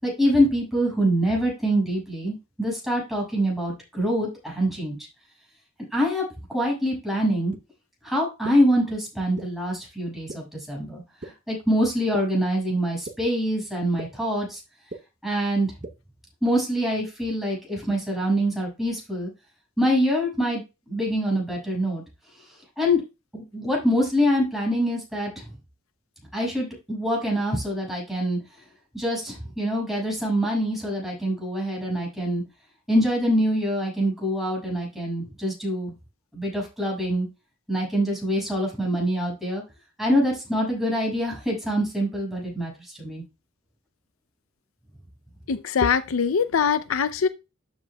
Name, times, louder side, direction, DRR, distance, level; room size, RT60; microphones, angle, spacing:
voice 1, 0.0-5.0 5.9-7.5 8.0-14.6 15.2-15.7 16.4-19.3 19.8-22.0 22.8-23.0 23.3-25.4 26.3-28.4 28.9-32.4 32.9-35.9 36.3-37.3 37.7-39.6 40.0-43.2, equal, ahead, 6.2 m, -25 dB
sound 1, 7.5-7.6 8.4-8.5 9.4-9.5 10.3-10.4 11.2-11.3 12.1-12.2 13.1-13.2 14.0-14.1 14.9-15.0 15.8-15.9, right 2 dB, 40° right, 0.8 m, -35 dB
voice 2, 45.5-47.3, left 6 dB, 80° left, 0.5 m, -22 dB
12.5 x 7.6 x 2.3 m
head